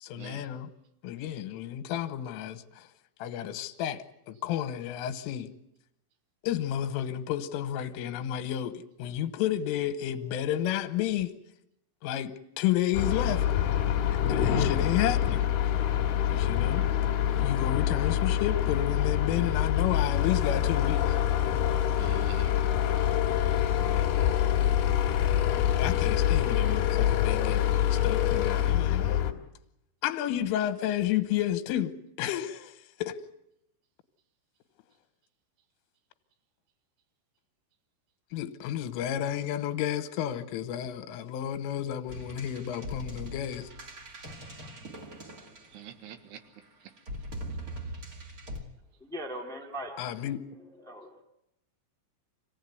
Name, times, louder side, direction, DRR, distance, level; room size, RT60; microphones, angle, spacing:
voice 1, 0.0-0.7 1.0-2.9 3.2-5.5 6.4-11.3 12.0-13.5 14.3-15.4 16.3-16.9 17.4-21.2 25.8-29.2 30.0-32.7 33.0-33.2 38.3-43.7 50.0-50.4, left 11 dB, 85° left, 3.7 m, -31 dB
sound 1, 12.9-29.3, left 10 dB, 65° left, 3.3 m, -26 dB
voice 2, 22.0-22.5 26.2-26.7 45.7-46.4, right 9 dB, 65° right, 3.2 m, -46 dB
sound 2, 42.1-46.1 47.0-48.6, equal, 90° right, 0.8 m, -41 dB
voice 3, 49.0-50.0 50.8-51.2, right 1 dB, ahead, 1.0 m, -39 dB
26.0 x 16.5 x 9.5 m
omnidirectional pair, 5.7 m